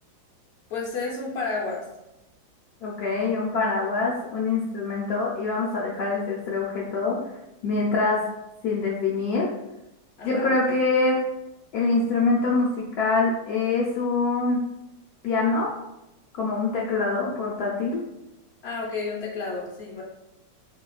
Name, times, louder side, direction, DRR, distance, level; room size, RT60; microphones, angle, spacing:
voice 1, 0.7-1.8 10.2-10.8 18.6-20.0, left 4 dB, 90° left, -4 dB, 0.5 m, -31 dB
voice 2, 2.8-7.2 7.6-8.2 8.6-9.5 10.2-11.2 11.7-14.6 15.2-15.7 16.3-18.0, left 3 dB, 70° left, -4 dB, 0.9 m, -24 dB
4.4 x 2.8 x 2.3 m, 0.91 s
omnidirectional pair, 2.2 m